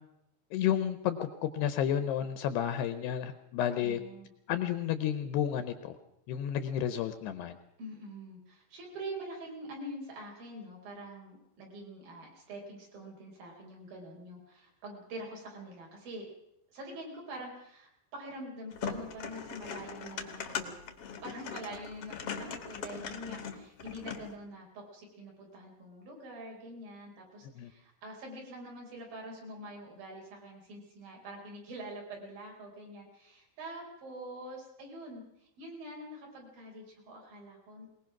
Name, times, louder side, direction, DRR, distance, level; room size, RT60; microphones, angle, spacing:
voice 1, 0.5-4.0 4.5-6.0 6.3-7.6 27.6-27.7, left 10 dB, 75° left, 10 dB, 2.7 m, -31 dB
voice 2, 3.7-4.3 7.8-16.3 16.7-20.8 21.2-37.9, right 1 dB, 50° right, 0 dB, 6.0 m, -45 dB
sound 1, 18.7-24.3, left 6 dB, 55° left, 1.6 m, -40 dB
21.5 x 20.5 x 6.0 m, 0.78 s
omnidirectional pair, 5.3 m